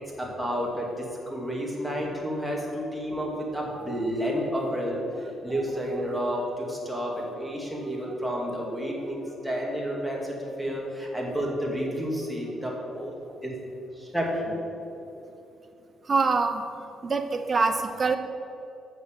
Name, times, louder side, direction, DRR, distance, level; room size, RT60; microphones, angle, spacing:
voice 1, 0.2-13.2 13.4-13.5 14.0-14.6, equal, ahead, -2 dB, 2.4 m, -30 dB
voice 2, 16.1-16.6 17.0-18.2, right 4 dB, 35° right, 7 dB, 0.7 m, -25 dB
7.1 x 6.9 x 7.4 m, 2.9 s
cardioid pair, 90°, 0 cm